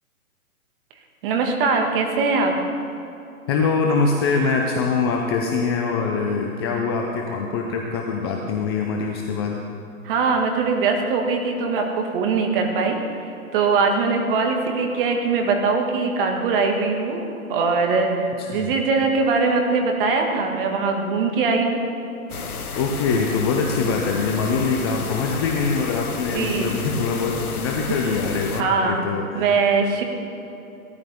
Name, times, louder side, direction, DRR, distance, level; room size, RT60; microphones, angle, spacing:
voice 1, 1.2-2.5 10.0-13.0 13.5-21.8 24.8-24.9 26.3-26.8 28.6-29.0 29.3-30.0, right 4 dB, 35° right, 2 dB, 1.9 m, -21 dB
voice 2, 3.5-9.6 18.4-18.7 22.7-29.5, left 4 dB, 20° left, 1 dB, 0.5 m, -23 dB
sound 1, 22.3-28.6, left 5 dB, 80° left, 1.1 m, -32 dB
17.5 x 13.0 x 3.5 m, 2.7 s
figure-of-eight pair, 130°, 44 cm